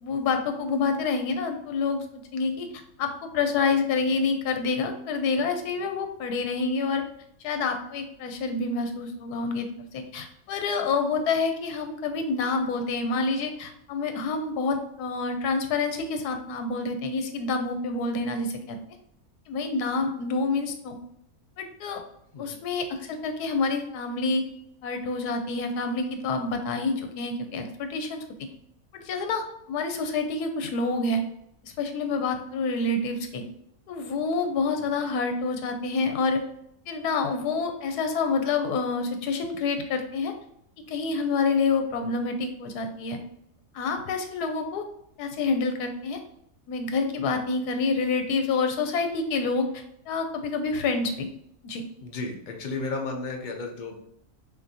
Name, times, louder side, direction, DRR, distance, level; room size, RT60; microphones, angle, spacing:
voice 1, 0.0-2.7 3.0-7.0 7.4-9.7 9.9-18.8 19.5-21.0 21.6-22.0 22.4-24.4 24.8-28.5 28.9-31.2 31.6-33.4 33.9-36.4 36.9-40.3 40.9-43.2 43.7-44.8 45.2-46.2 46.7-51.3 51.6-51.8, left 4 dB, 80° left, 6 dB, 1.2 m, -27 dB
voice 2, 52.0-53.9, left 3 dB, 60° left, 1 dB, 0.5 m, -33 dB
5.8 x 2.6 x 2.7 m, 0.73 s
omnidirectional pair, 1.6 m